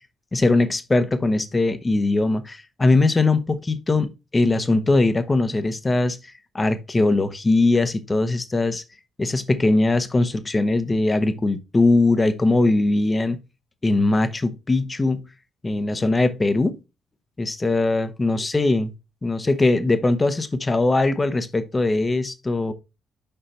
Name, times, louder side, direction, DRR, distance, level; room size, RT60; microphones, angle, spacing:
voice 1, 0.3-6.2 6.5-8.8 9.2-13.4 13.8-15.2 15.6-16.8 17.4-18.9 19.2-22.7, left 2 dB, 25° left, 1.0 m, -21 dB
5.6 x 5.6 x 4.2 m
figure-of-eight pair, 45°, 0 cm